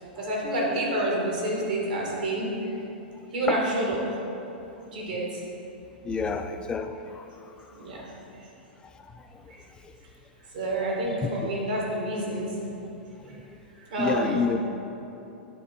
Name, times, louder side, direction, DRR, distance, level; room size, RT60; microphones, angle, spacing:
voice 1, 0.2-2.7 3.3-4.0 4.9-5.4 7.7-8.1 9.5-9.6 10.5-12.5 13.3-13.4 13.7-14.5, right 1 dB, 55° right, -3 dB, 1.8 m, -28 dB
voice 2, 6.0-7.2 11.2-11.5 14.0-14.6, left 5 dB, 15° left, 7 dB, 0.4 m, -28 dB
9.2 x 3.8 x 5.4 m, 2.8 s
figure-of-eight pair, 100°, 5 cm